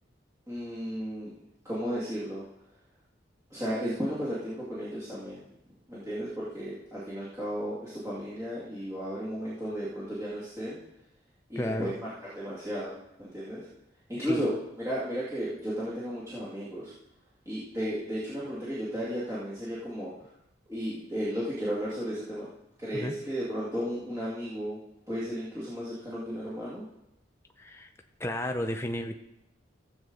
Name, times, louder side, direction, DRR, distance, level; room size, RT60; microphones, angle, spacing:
voice 1, 0.5-1.3 1.6-2.4 3.5-5.5 5.9-10.8 11.5-12.0 12.4-13.7 14.1-14.5 14.8-16.9 17.5-20.1 20.7-22.5 22.8-24.8 25.1-26.8, equal, 15° right, -10 dB, 2.2 m, -34 dB
voice 2, 11.6-11.9 14.2-14.5 22.9-23.2 27.6-27.9 28.2-29.2, left 1 dB, 15° left, 4 dB, 0.6 m, -32 dB
15.5 x 7.5 x 3.9 m, 0.87 s
head